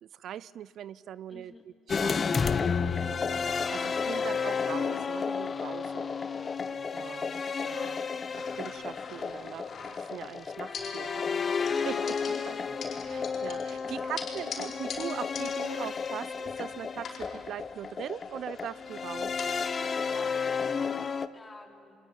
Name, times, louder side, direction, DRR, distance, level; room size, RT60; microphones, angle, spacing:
voice 1, 0.0-6.2 6.9-8.1 8.5-12.5 13.1-19.3, right 10 dB, 65° right, 20 dB, 0.5 m, -41 dB
voice 2, 1.3-1.7 12.3-12.6 13.8-14.7 20.1-22.0, left 2 dB, 20° left, 4 dB, 4.1 m, -49 dB
sound 1, 1.9-21.3, left 5 dB, 35° left, 1.0 m, -32 dB
sound 2, 8.3-10.3 10.7-11.4 11.7-16.7 17.0-19.7, left 5 dB, 55° left, 4.9 m, -44 dB
24.0 x 21.5 x 9.1 m, 2.6 s
supercardioid pair, 80°, 0 cm